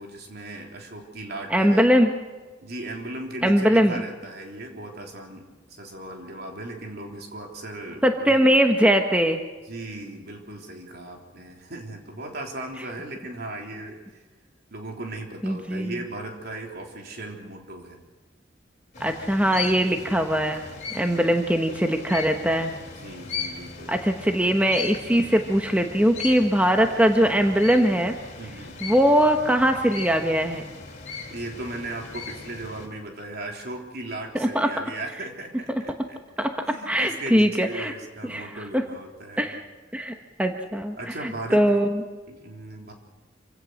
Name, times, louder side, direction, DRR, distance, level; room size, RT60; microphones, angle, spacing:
voice 1, 0.0-1.9 2.6-8.4 9.7-14.2 14.7-18.0 20.9-21.2 23.0-24.0 28.4-28.8 31.3-39.5 41.0-41.6 42.3-42.9, right 2 dB, 60° right, 2 dB, 3.6 m, -37 dB
voice 2, 1.5-2.1 3.4-4.0 8.0-9.4 15.4-15.9 19.0-20.6 20.9-22.7 23.9-28.1 28.8-30.7 34.3-34.7 36.4-37.9 38.3-38.5 38.7-38.8 39.4-39.6 39.9-42.0, equal, 5° right, 5 dB, 1.1 m, -21 dB
sound 1, 18.9-32.9, left 5 dB, 40° left, 4.2 m, -38 dB
26.5 x 16.5 x 6.4 m, 1.3 s
head